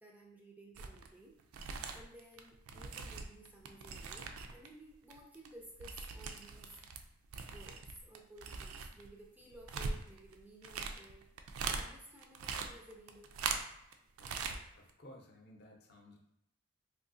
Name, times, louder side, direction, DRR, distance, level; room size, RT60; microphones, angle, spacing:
voice 1, 0.0-1.3 1.7-6.7 7.5-11.2 11.7-13.4, right 1 dB, 10° right, -1 dB, 0.4 m, -56 dB
sound 1, 0.8-1.1 1.4-4.7 4.9-7.0 7.3-11.9 12.2-13.9 14.2-14.6 14.9-15.0, right 5 dB, 85° right, 0.4 m, -41 dB
voice 2, 14.2-16.2, left 1 dB, 50° left, 1 dB, 0.6 m, -57 dB
3.8 x 2.6 x 2.6 m, 0.78 s
head